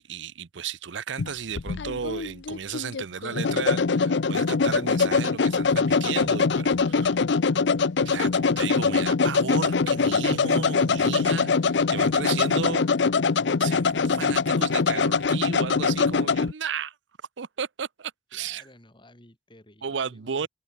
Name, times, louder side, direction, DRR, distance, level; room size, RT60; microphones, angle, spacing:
voice 1, 0.0-7.2 8.0-12.9 13.6-16.9 17.4-18.6 19.8-20.5, right 6 dB, 85° right, 0.7 m, -34 dB
sound 1, 1.2-16.5, left 4 dB, 70° left, 0.6 m, -23 dB
voice 2, 18.3-20.5, left 1 dB, 25° left, 5.3 m, -53 dB
head